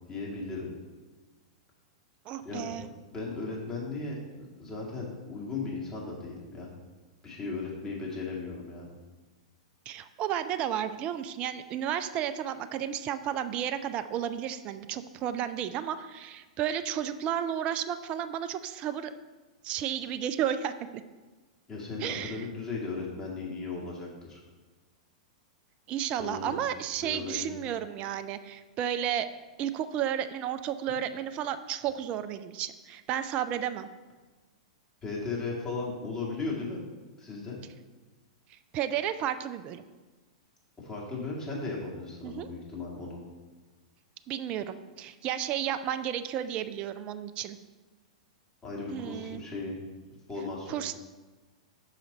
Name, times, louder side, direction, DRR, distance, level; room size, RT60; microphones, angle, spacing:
voice 1, 0.1-0.7 2.4-6.7 7.2-9.0 21.7-24.4 26.2-26.5 27.0-27.6 35.0-36.8 37.2-37.6 40.8-43.2 48.6-49.8 50.3-50.8, left 3 dB, 20° left, -4 dB, 1.9 m, -36 dB
voice 2, 2.3-2.9 9.9-19.1 19.6-20.7 22.0-22.5 25.9-29.3 29.6-33.9 38.5-39.8 42.2-42.5 44.3-47.6 48.9-49.4 50.7-51.0, right 10 dB, 35° right, 11 dB, 0.3 m, -32 dB
5.8 x 5.0 x 4.0 m, 1.3 s
figure-of-eight pair, 100°, 3 cm